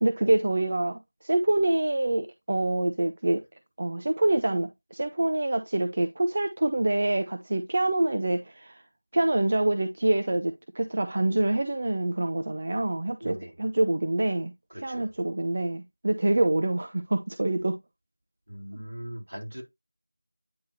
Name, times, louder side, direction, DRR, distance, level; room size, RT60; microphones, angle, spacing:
voice 1, 0.0-3.4 3.8-8.8 9.1-14.5 14.8-17.8 18.7-18.8, right 2 dB, 40° right, 0.7 m, -26 dB
voice 2, 13.2-13.5 14.7-15.1 18.5-19.6, equal, 75° right, 3.3 m, -39 dB
9.6 x 3.6 x 2.7 m
figure-of-eight pair, 170°, 0 cm